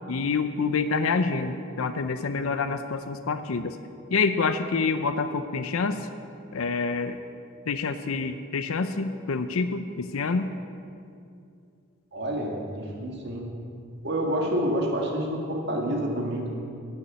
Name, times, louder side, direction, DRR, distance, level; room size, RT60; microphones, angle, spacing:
voice 1, 0.1-3.8 4.1-6.1 6.5-7.2 7.7-10.5, left 4 dB, 80° left, 9 dB, 0.6 m, -27 dB
voice 2, 12.1-13.5 14.0-16.5, equal, 50° right, 0 dB, 2.0 m, -28 dB
11.0 x 7.0 x 9.5 m, 2.5 s
head